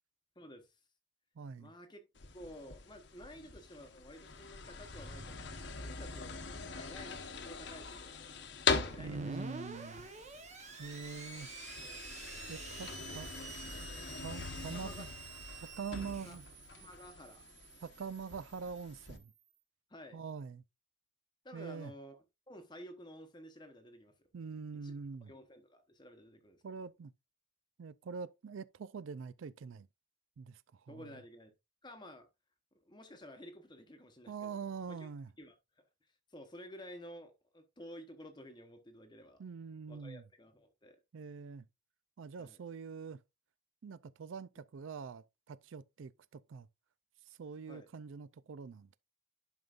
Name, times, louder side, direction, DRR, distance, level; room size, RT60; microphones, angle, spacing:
voice 1, 0.4-0.8 1.6-2.0 2.3-8.2 8.8-9.6 11.8-12.1 14.7-15.1 16.2-16.4 16.7-17.4 19.9-20.2 21.4-22.2 22.5-24.1 24.8-24.9 25.2-26.9 30.9-31.5 31.8-32.3 32.7-34.6 34.9-35.1 35.4-35.8 36.3-39.4 39.9-41.0 42.4-42.6 47.7-47.9, equal, 20° left, 0.9 m, -52 dB
voice 2, 1.4-1.7 9.0-10.1 10.8-11.5 12.5-13.3 14.2-15.1 15.6-16.4 17.8-19.3 20.1-20.6 21.5-21.9 24.3-25.3 26.6-27.1 27.8-29.9 30.4-31.1 34.3-35.3 39.4-40.2 41.1-41.6 42.2-43.2 43.8-46.7 47.3-48.9, right 5 dB, 75° right, 0.4 m, -44 dB
sound 1, 2.2-19.2, left 5 dB, 60° left, 1.0 m, -42 dB
Screech, 8.9-19.4, right 4 dB, 35° right, 1.0 m, -49 dB
11.0 x 5.3 x 2.4 m
head